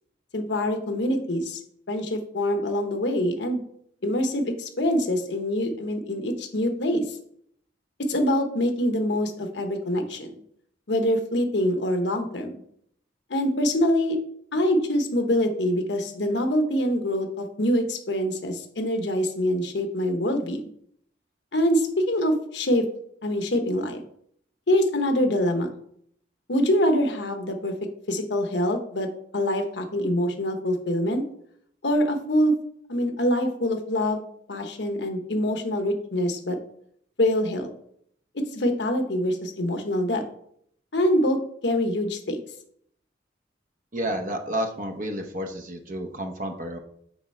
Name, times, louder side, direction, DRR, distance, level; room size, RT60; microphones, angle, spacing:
voice 1, 0.3-1.6 1.9-3.6 4.0-7.2 8.1-10.3 10.9-12.5 13.3-14.2 14.5-20.6 21.5-22.9 23.2-24.0 24.7-25.7 26.5-27.7 28.1-29.1 29.3-31.2 31.8-32.5 32.9-34.2 34.5-36.6 37.2-37.7 38.5-40.2 40.9-42.4, equal, 75° left, 5 dB, 1.0 m, -24 dB
voice 2, 43.9-46.8, right 1 dB, 45° right, 5 dB, 0.8 m, -30 dB
8.8 x 3.4 x 4.3 m, 0.66 s
head